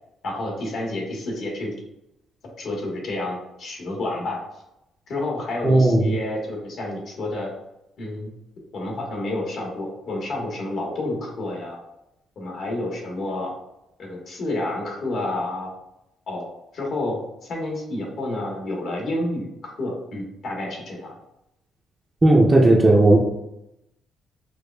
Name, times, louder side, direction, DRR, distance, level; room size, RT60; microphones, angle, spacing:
voice 1, 0.2-1.7 2.6-4.4 5.1-7.5 8.0-8.3 8.7-11.8 12.4-13.5 14.0-15.7 16.3-16.4 16.7-21.1, left 1 dB, 65° left, -1 dB, 1.2 m, -29 dB
voice 2, 5.6-6.0 22.2-23.2, right 2 dB, 25° right, -3 dB, 0.5 m, -15 dB
4.8 x 2.3 x 2.2 m, 0.86 s
cardioid pair, 90°, 0 cm